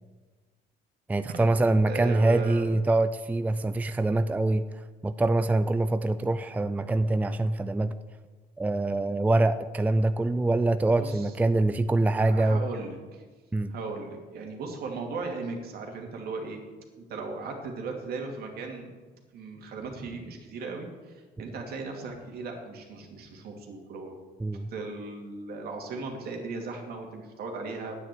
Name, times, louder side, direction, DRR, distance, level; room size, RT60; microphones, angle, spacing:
voice 1, 1.1-4.6 5.0-7.9 8.6-12.6 13.5-13.7 24.4-24.7, right 2 dB, 10° right, 11 dB, 0.4 m, -24 dB
voice 2, 1.9-2.8 10.9-11.3 12.2-13.2 13.7-16.6 17.0-18.9 19.3-24.2 24.7-28.0, right 4 dB, 70° right, 2 dB, 2.5 m, -37 dB
9.1 x 8.2 x 9.1 m, 1.4 s
cardioid pair, 110°, 17 cm